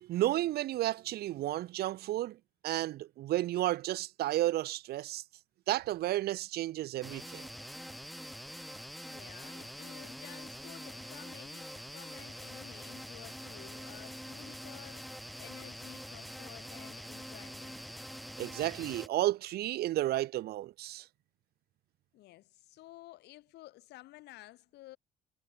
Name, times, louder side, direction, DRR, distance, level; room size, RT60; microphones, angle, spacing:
voice 1, 0.0-2.4 2.6-5.2 5.7-7.5 18.4-21.1, right 15 dB, 70° right, 0.9 m, -32 dB
sound 1, 7.0-19.1, equal, ahead, 0.9 m, -45 dB
voice 2, 9.0-15.1 15.4-17.8 22.1-25.0, left 17 dB, 80° left, 7.6 m, -53 dB
cardioid pair, 110°, 17 cm